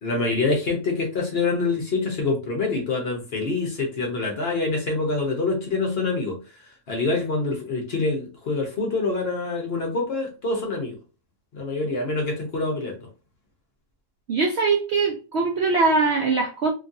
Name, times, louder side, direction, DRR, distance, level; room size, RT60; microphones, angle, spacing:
voice 1, 0.0-11.0 11.5-13.0, left 3 dB, 50° left, 0.8 m, -26 dB
voice 2, 14.3-16.7, right 4 dB, 70° right, 0.6 m, -22 dB
3.0 x 2.5 x 2.5 m
omnidirectional pair, 1.6 m